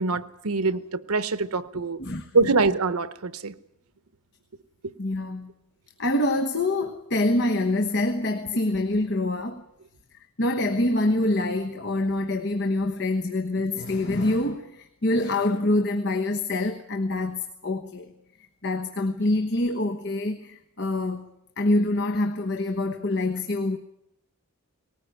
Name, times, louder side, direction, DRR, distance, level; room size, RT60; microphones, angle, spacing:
voice 1, 0.0-2.0 2.3-3.5, right 3 dB, 85° right, 1.0 m, -24 dB
voice 2, 2.0-2.5 5.0-5.5 6.0-9.6 10.4-18.1 18.6-21.3 21.6-23.8, left 2 dB, 50° left, 1.2 m, -25 dB
19.5 x 18.5 x 9.4 m
head